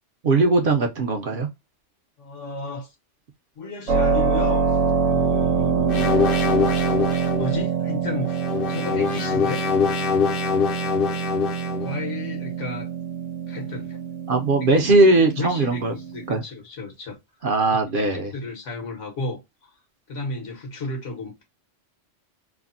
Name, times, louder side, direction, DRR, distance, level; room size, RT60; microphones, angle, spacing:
voice 1, 0.2-1.5 14.3-15.9 16.3-16.4 17.4-18.3, right 2 dB, 55° right, 0.7 m, -19 dB
voice 2, 2.2-2.9 3.6-4.7 5.0-6.2 7.3-8.4 8.7-9.7 11.8-12.9 13.5-14.0 15.4-17.2 17.9-19.7 20.1-21.4, left 2 dB, 85° left, 1.5 m, -33 dB
Keyboard (musical), 3.9-16.4, right 6 dB, 85° right, 1.0 m, -25 dB
sound 1, 5.9-7.5 8.3-11.9, left 6 dB, 60° left, 0.6 m, -24 dB
3.3 x 2.1 x 2.4 m
omnidirectional pair, 1.2 m